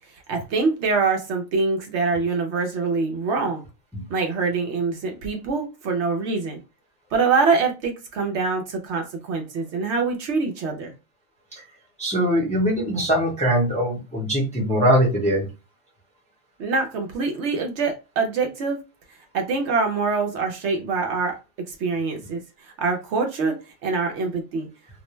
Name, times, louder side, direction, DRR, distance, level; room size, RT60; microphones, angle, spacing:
voice 1, 0.3-3.6 4.1-6.6 7.1-10.9 16.6-18.8 19.3-21.3 21.7-22.4 22.8-23.6 23.8-24.7, right 4 dB, 65° right, 3 dB, 0.9 m, -24 dB
voice 2, 12.0-15.5, equal, 5° left, -4 dB, 0.6 m, -21 dB
2.5 x 2.1 x 3.0 m, 0.29 s
omnidirectional pair, 1.3 m